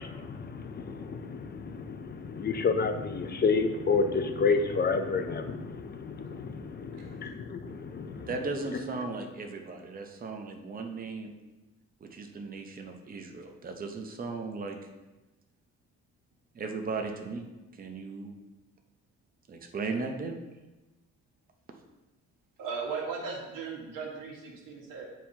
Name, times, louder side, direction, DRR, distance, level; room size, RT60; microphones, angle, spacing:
voice 1, 0.0-8.3, left 4 dB, 30° left, 0.5 m, -30 dB
voice 2, 8.3-11.3 12.0-14.8 16.5-17.5 17.7-18.3 19.5-20.3, right 4 dB, 30° right, 0.7 m, -36 dB
voice 3, 22.6-25.0, right 5 dB, 90° right, 1.5 m, -37 dB
9.0 x 4.6 x 2.8 m
cardioid pair, 130°, 32 cm